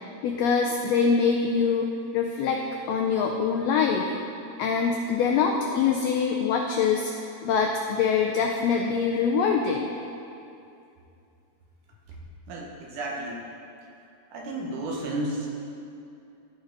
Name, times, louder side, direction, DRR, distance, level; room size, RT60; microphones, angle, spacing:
voice 1, 0.2-2.6 2.9-4.1 4.6-7.1 7.4-9.9, left 6 dB, 85° left, 2 dB, 1.5 m, -24 dB
voice 2, 12.5-13.4 14.3-15.5, right 1 dB, 80° right, -2 dB, 2.7 m, -32 dB
13.5 x 5.1 x 3.9 m, 2.6 s
omnidirectional pair, 3.6 m